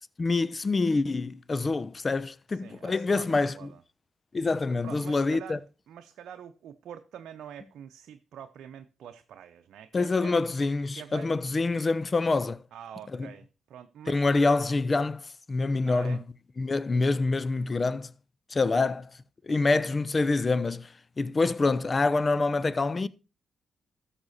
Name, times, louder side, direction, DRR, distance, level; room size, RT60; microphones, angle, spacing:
voice 1, 0.2-3.5 4.3-5.6 9.9-12.6 13.1-13.3 14.1-16.2 16.6-18.1 18.5-19.0 19.4-20.9 21.2-23.1, left 3 dB, 40° left, 0.9 m, -26 dB
voice 2, 2.5-3.8 4.8-10.4 10.9-11.3 12.7-14.3 15.9-16.2 18.7-18.9 19.5-19.8, right 9 dB, 75° right, 0.7 m, -45 dB
13.5 x 7.4 x 4.2 m
supercardioid pair, 45°, 0 cm